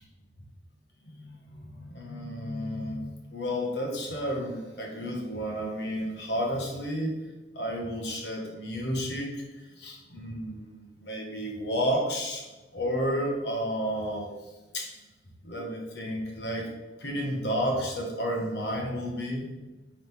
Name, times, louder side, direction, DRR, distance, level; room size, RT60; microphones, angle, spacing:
voice 1, 1.0-7.1 7.5-9.4 9.7-12.4 12.7-14.3 14.7-14.9 15.4-16.7 17.0-19.5, equal, 80° left, 0 dB, 1.6 m, -31 dB
8.1 x 3.9 x 3.6 m, 1.1 s
head